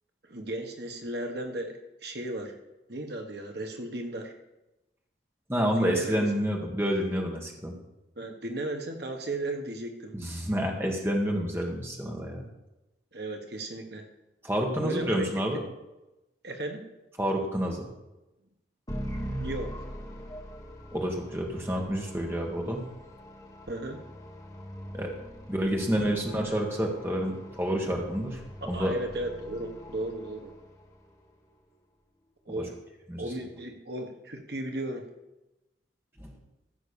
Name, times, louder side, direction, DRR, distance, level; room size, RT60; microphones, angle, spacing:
voice 1, 0.3-2.6 2.9-4.3 5.8-6.3 8.2-10.1 13.1-14.0 14.8-15.3 16.4-16.8 19.3-19.9 23.7-24.0 28.7-30.5 32.5-32.7 33.2-35.0, right 1 dB, 60° right, 3 dB, 1.4 m, -35 dB
voice 2, 5.5-7.7 10.1-12.5 14.4-15.6 17.2-17.9 20.9-22.8 24.9-25.1 25.5-28.4 28.7-28.9 33.1-33.3 36.2-36.3, equal, 10° right, 0 dB, 1.8 m, -29 dB
sound 1, 18.9-31.0, equal, 20° left, 1.7 m, -42 dB
15.0 x 5.9 x 7.0 m, 0.97 s
head